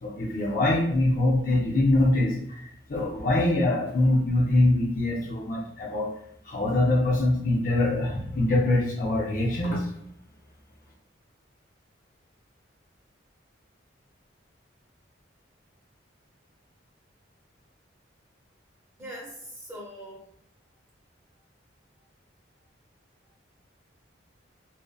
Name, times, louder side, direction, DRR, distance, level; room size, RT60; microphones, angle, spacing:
voice 1, 0.0-2.6 2.9-6.1 6.5-9.9, left 1 dB, 45° left, -2 dB, 0.4 m, -23 dB
voice 2, 19.0-20.3, equal, 15° right, -5 dB, 0.7 m, -41 dB
2.6 x 2.1 x 2.3 m, 0.70 s
head